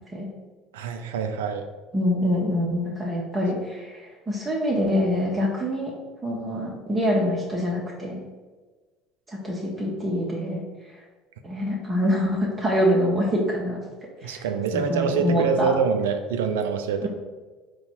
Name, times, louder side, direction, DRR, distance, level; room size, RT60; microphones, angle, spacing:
voice 1, 0.7-1.7 14.2-17.1, right 5 dB, 80° right, 7 dB, 0.4 m, -25 dB
voice 2, 1.9-5.9 6.2-8.2 9.3-10.6 11.4-13.8 14.2-14.4 14.7-15.7 17.0-17.1, equal, 20° right, -4 dB, 0.9 m, -25 dB
3.9 x 2.3 x 4.4 m, 1.3 s
hypercardioid pair, 75°, 0 cm